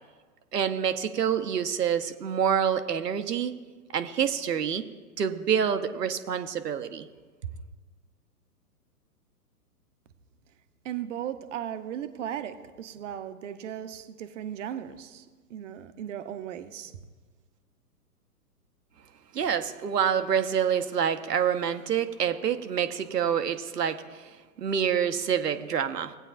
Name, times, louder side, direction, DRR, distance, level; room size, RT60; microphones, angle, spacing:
voice 1, 0.5-3.5 3.9-4.9 5.2-7.1 19.3-24.3 24.6-26.2, right 8 dB, 85° right, 9 dB, 0.8 m, -27 dB
voice 2, 10.8-17.0, right 10 dB, 50° right, 11 dB, 0.7 m, -37 dB
17.0 x 8.8 x 2.5 m, 1.4 s
hypercardioid pair, 125°, 47 cm